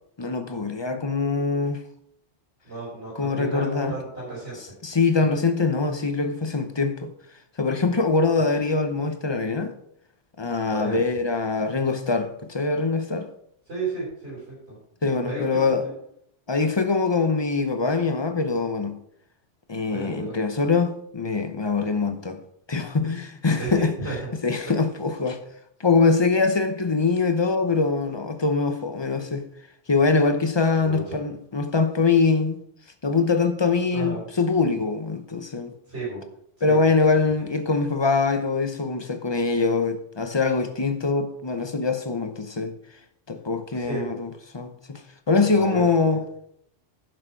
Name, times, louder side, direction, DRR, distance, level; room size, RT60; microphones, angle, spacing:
voice 1, 0.2-1.8 3.2-3.9 4.8-7.1 7.6-9.7 10.4-13.3 15.0-15.8 16.5-19.0 19.7-22.4 22.7-23.9 24.4-25.4 25.8-29.5 29.9-32.6 33.0-35.7 36.6-42.7 43.3-44.3 44.5-45.0 45.3-46.2, left 4 dB, 30° left, 0.7 m, -23 dB
voice 2, 2.6-4.6 8.4-8.5 10.7-11.0 13.7-14.8 15.3-15.9 19.9-20.3 23.6-24.3 30.8-31.1 33.9-34.2 35.9-36.2 36.6-36.9 43.7-44.1 45.4-46.2, right 3 dB, 60° right, 5.0 m, -33 dB
11.0 x 6.3 x 4.5 m
omnidirectional pair, 1.2 m